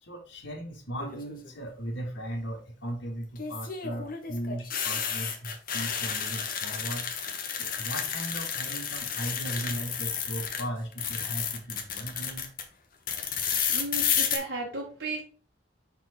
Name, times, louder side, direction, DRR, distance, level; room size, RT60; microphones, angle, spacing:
voice 1, 0.0-7.1 7.5-12.5, right 1 dB, 85° left, -1 dB, 1.7 m, -37 dB
sound 1, 1.0-1.5 3.4-10.6 10.9-12.6 13.1-14.4, left 7 dB, 50° left, 1.1 m, -31 dB
voice 2, 13.2-15.2, right 2 dB, 55° right, -5 dB, 2.2 m, -35 dB
5.6 x 4.5 x 4.2 m, 0.39 s
head